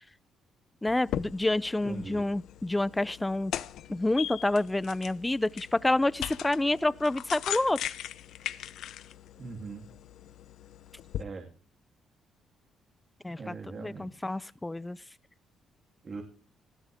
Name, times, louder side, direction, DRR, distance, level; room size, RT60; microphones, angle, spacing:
voice 1, 0.8-3.5 3.9-7.9 13.2-13.5 13.8-15.0, left 2 dB, 15° left, 0.6 m, -28 dB
sound 1, 0.9-11.2, left 11 dB, 80° left, 0.7 m, -39 dB
voice 2, 1.8-2.3 9.4-9.9 11.2-11.5 13.4-14.5 16.0-16.2, right 4 dB, 40° right, 3.1 m, -41 dB
20.0 x 14.5 x 3.6 m
cardioid pair, 90°, 0 cm